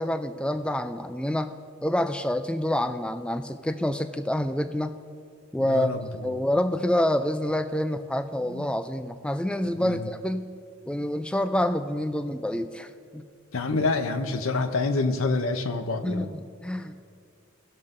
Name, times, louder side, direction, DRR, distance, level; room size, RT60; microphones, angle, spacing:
voice 1, 0.0-1.5 1.8-5.0 5.5-5.9 6.2-10.5 10.9-13.2 16.0-17.0, left 1 dB, 5° left, 10 dB, 0.3 m, -27 dB
voice 2, 5.6-6.0 8.5-8.6 9.8-10.1 13.5-16.3, left 3 dB, 75° left, 6 dB, 0.7 m, -27 dB
18.0 x 6.6 x 3.7 m, 2.3 s
head